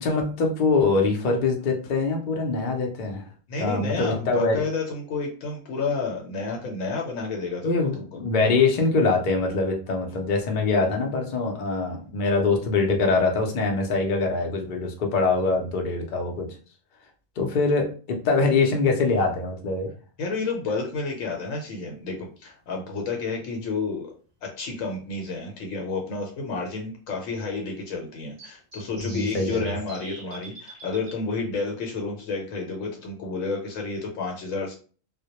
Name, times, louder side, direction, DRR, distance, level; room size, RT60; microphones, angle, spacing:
voice 1, 0.0-3.2 3.6-4.6 7.6-16.5 17.4-19.9 29.0-29.8, left 3 dB, 55° left, 2 dB, 0.5 m, -23 dB
voice 2, 3.5-8.0 20.2-24.1 24.4-34.7, left 4 dB, 85° left, 0 dB, 1.0 m, -30 dB
sound 1, 22.8-22.9 24.9-25.0 25.5-25.6 25.8-25.9 28.4-31.1, right 2 dB, 30° right, 0.5 m, -44 dB
2.1 x 2.1 x 2.8 m, 0.39 s
omnidirectional pair, 1.4 m